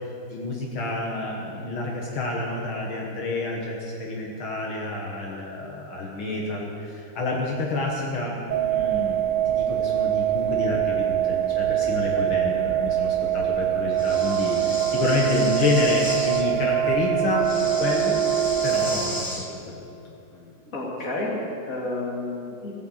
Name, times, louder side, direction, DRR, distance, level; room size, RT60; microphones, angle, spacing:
voice 1, 0.3-17.4 17.8-18.2 18.6-19.8 20.3-20.5, left 3 dB, 75° left, -1 dB, 2.3 m, -28 dB
sound 1, 8.5-18.9, right 11 dB, 55° right, 1.0 m, -24 dB
Breathing, 14.0-16.4 17.4-19.5, left 1 dB, 15° left, 0.7 m, -34 dB
sound 2, 14.1-19.2, right 7 dB, 70° right, 1.4 m, -34 dB
voice 2, 20.7-22.7, left 2 dB, 40° left, -3 dB, 2.9 m, -30 dB
15.5 x 8.3 x 8.2 m, 2.6 s
omnidirectional pair, 2.3 m